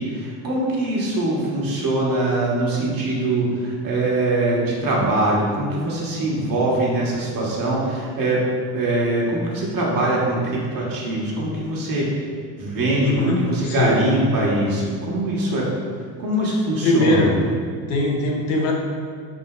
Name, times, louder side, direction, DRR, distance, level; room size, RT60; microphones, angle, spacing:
voice 1, 0.0-8.5 8.7-12.1 12.6-15.7 16.2-17.3, right 2 dB, 55° right, -4 dB, 1.4 m, -22 dB
voice 2, 13.0-14.0 16.8-17.3 17.9-18.7, left 2 dB, 75° left, -2 dB, 1.0 m, -21 dB
3.8 x 2.8 x 4.8 m, 2.1 s
supercardioid pair, 95°, 41 cm